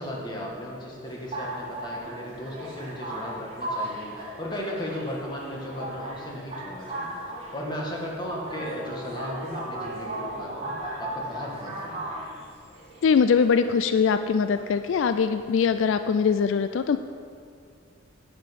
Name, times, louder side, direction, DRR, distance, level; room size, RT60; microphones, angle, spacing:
voice 1, 0.0-7.2 7.5-10.7 11.0-12.1, equal, 20° left, -3 dB, 1.7 m, -35 dB
sound 1, 1.0-15.9, right 1 dB, 30° right, 1.7 m, -37 dB
sound 2, 7.7-11.0, right 2 dB, 85° right, 0.9 m, -42 dB
voice 2, 13.0-17.0, left 6 dB, 70° left, 10 dB, 0.3 m, -22 dB
10.5 x 5.9 x 7.4 m, 2.2 s
head